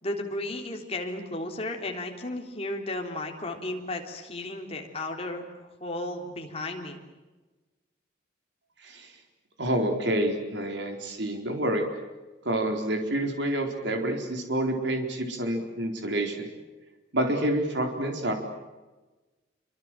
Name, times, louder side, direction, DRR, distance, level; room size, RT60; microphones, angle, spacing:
voice 1, 0.0-5.4 5.8-7.0, left 2 dB, 30° left, 2 dB, 3.6 m, -34 dB
voice 2, 8.8-9.1 9.6-11.8 12.4-16.4 17.1-18.3, right 1 dB, 70° right, 4 dB, 4.2 m, -28 dB
28.0 x 25.0 x 7.7 m, 1.2 s
head